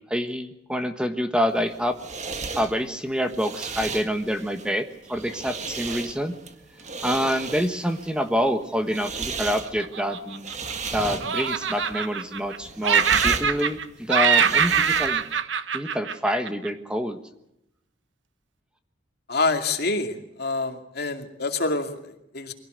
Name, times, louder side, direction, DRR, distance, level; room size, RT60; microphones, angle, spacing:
voice 1, 0.1-2.0 2.5-6.3 7.0-10.5 10.9-15.2 15.7-17.2, equal, 5° right, 7 dB, 1.3 m, -27 dB
sound 1, 1.5-15.4, right 4 dB, 40° right, 1.8 m, -35 dB
Laughter, 9.6-10.9 11.2-12.6 12.8-13.8 14.1-16.7, right 6 dB, 90° right, 1.3 m, -23 dB
voice 2, 19.3-22.5, left 3 dB, 60° left, 5 dB, 2.5 m, -27 dB
23.5 x 17.0 x 8.0 m, 0.84 s
head